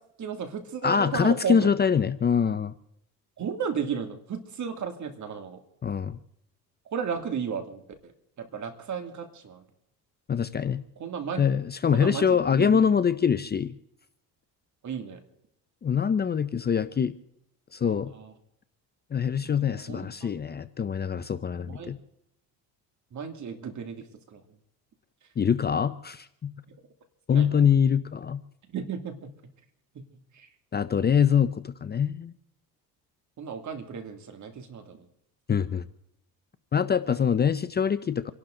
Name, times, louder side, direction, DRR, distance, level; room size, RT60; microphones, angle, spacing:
voice 1, 0.2-1.7 3.4-5.6 6.9-9.7 11.0-11.4 11.9-12.8 14.8-15.2 17.8-18.3 19.9-20.3 21.6-21.9 23.1-24.4 27.3-27.7 28.7-29.3 30.3-30.5 33.4-35.1 37.1-37.2, right 6 dB, 50° right, 6 dB, 2.6 m, -34 dB
voice 2, 0.8-2.7 5.8-6.2 10.3-10.8 11.4-13.7 15.8-17.1 17.7-18.1 19.1-22.0 25.4-26.5 27.3-28.4 30.7-32.3 35.5-35.8 36.7-38.3, left 7 dB, 25° left, 14 dB, 0.6 m, -24 dB
28.0 x 12.0 x 3.8 m, 0.77 s
cardioid pair, 95°, 38 cm